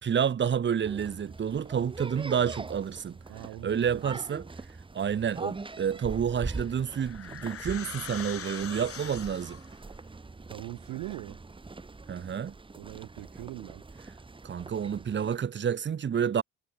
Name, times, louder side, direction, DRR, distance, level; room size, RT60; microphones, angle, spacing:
voice 1, 0.0-3.2 3.6-4.5 4.9-9.6 12.1-12.6 14.4-16.4, right 8 dB, 35° right, 2.8 m, -29 dB
sound 1, 0.8-15.4, right 3 dB, 15° right, 5.4 m, -43 dB
voice 2, 3.3-4.2 10.5-11.4 12.8-13.8, right 18 dB, 80° right, 4.1 m, -41 dB
sound 2, 6.4-9.8, left 9 dB, 45° left, 5.7 m, -42 dB
cardioid pair, 135°, 32 cm